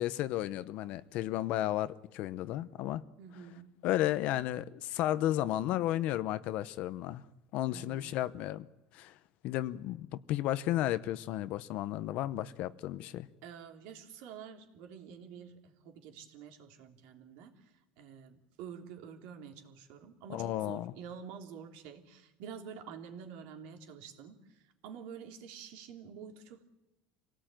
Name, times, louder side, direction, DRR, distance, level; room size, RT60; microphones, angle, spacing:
voice 1, 0.0-3.0 3.8-7.2 7.5-8.7 8.9-9.2 9.4-13.3 20.3-20.9, left 14 dB, 50° left, 0.8 m, -33 dB
voice 2, 3.2-3.7 7.7-8.2 13.4-26.6, right 7 dB, 65° right, 3.1 m, -48 dB
27.0 x 18.0 x 9.1 m
cardioid pair, 170°, 3 cm